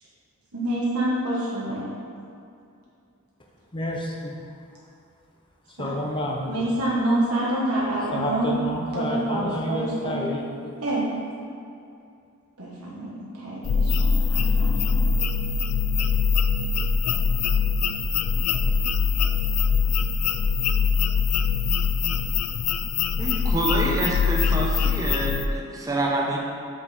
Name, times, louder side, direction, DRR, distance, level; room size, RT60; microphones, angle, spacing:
voice 1, 0.5-1.8 5.8-5.9 6.5-8.5 8.9-10.2 10.8-11.0 12.6-15.1, right 1 dB, 90° right, -6 dB, 1.3 m, -27 dB
voice 2, 3.7-4.3 5.8-6.5 8.1-10.7, equal, 20° left, 0 dB, 0.7 m, -29 dB
sound 1, 13.6-25.5, left 5 dB, 85° left, 0.4 m, -23 dB
voice 3, 23.2-26.4, right 1 dB, 15° right, -2 dB, 0.8 m, -26 dB
7.0 x 5.3 x 4.2 m, 2.5 s
head